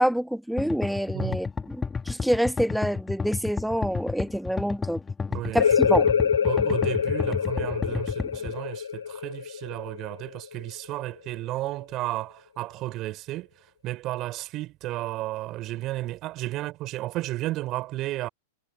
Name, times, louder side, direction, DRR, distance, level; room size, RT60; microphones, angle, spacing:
voice 1, 0.0-5.0 5.5-6.1, equal, ahead, 1.3 m, -27 dB
sound 1, 0.6-8.5, left 5 dB, 15° left, 2.1 m, -31 dB
voice 2, 5.3-6.1 6.4-13.5 13.8-18.3, right 17 dB, 40° right, 3.6 m, -33 dB
sound 2, 5.6-10.9, left 7 dB, 75° left, 0.6 m, -25 dB
figure-of-eight pair, 100°, 0 cm